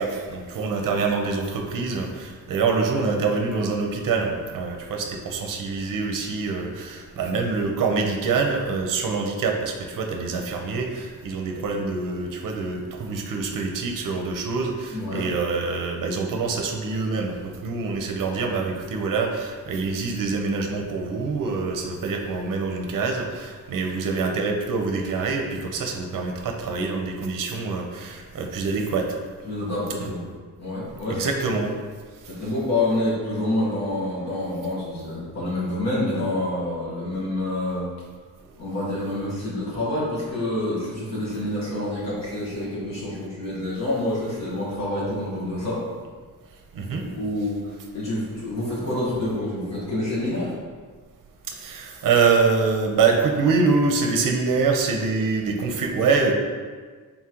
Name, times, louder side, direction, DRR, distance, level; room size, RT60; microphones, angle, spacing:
voice 1, 0.0-29.1 30.0-30.1 31.1-31.7 46.7-47.0 51.5-56.3, right 4 dB, 65° right, 3 dB, 0.6 m, -25 dB
voice 2, 14.9-15.3 29.5-31.2 32.3-37.9 38.6-45.8 47.1-50.5, left 1 dB, 50° left, -7 dB, 1.3 m, -27 dB
4.1 x 3.7 x 2.9 m, 1.5 s
wide cardioid pair, 170°, 35 cm